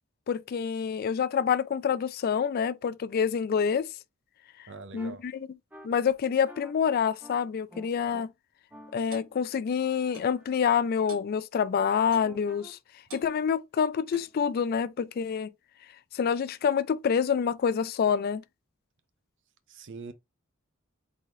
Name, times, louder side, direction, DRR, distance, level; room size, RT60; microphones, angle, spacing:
voice 1, 0.3-3.9 4.9-5.5 5.8-8.3 8.9-12.8 13.1-15.5 16.1-18.4, left 7 dB, 45° left, 0.3 m, -27 dB
voice 2, 4.7-5.3 19.7-20.1, right 4 dB, 55° right, 0.6 m, -43 dB
sound 1, 5.0-5.1 5.7-5.9 6.5-6.7 7.2-7.4 7.7-8.2 8.7-11.0 12.2-12.7, equal, 10° right, 0.7 m, -51 dB
Clock, 9.1-9.3 10.1-10.4 11.1-11.3 12.1-12.4 13.1-13.3 14.1-14.4, right 2 dB, 80° right, 1.8 m, -46 dB
4.0 x 3.7 x 3.0 m
head